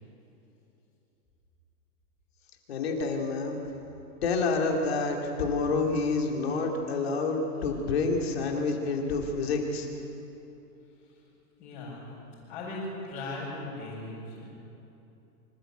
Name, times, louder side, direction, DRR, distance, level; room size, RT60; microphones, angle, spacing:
voice 1, 2.7-3.6 4.2-9.9, left 3 dB, 40° left, 1 dB, 2.8 m, -28 dB
voice 2, 11.6-12.1 12.5-14.5, left 2 dB, 15° left, -11 dB, 5.8 m, -38 dB
25.0 x 14.5 x 8.0 m, 2.9 s
hypercardioid pair, 180°, 47 cm